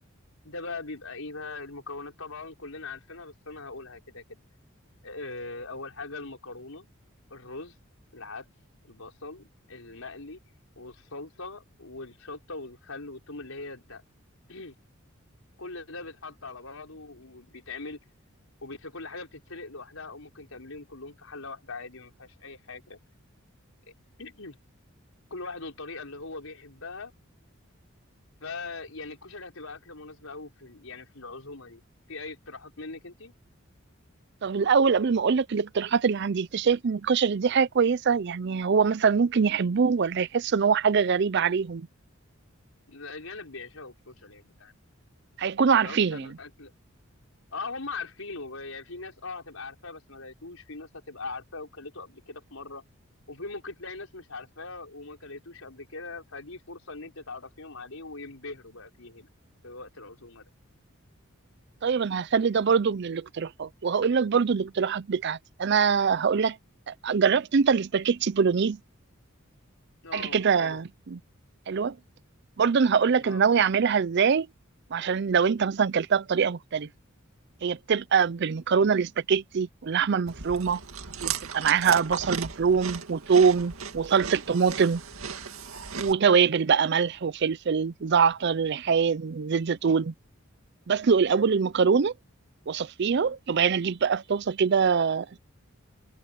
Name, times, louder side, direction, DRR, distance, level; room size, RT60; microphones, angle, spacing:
voice 1, 0.4-4.4 5.0-6.9 7.3-7.7 8.1-8.5 8.8-10.4 10.8-14.0 14.5-14.8 15.6-18.0 18.6-23.0 24.2-24.6 25.3-27.1 28.4-31.8 32.1-33.3 42.9-44.7 45.8-46.7 47.5-52.8 53.3-59.3 59.6-60.5 70.0-70.8 73.2-73.4 78.7-78.9, left 3 dB, 80° left, 4.8 m, -41 dB
voice 2, 34.4-41.9 45.4-46.3 61.8-66.6 66.9-68.8 70.1-71.2 71.7-72.0 72.6-74.5 74.9-76.9 77.6-80.8 81.2-85.0 86.0-90.1 90.9-92.1 92.7-95.4, right 6 dB, 55° right, 0.5 m, -24 dB
Chewing mastication, 80.3-86.1, right 6 dB, 85° right, 2.2 m, -36 dB
head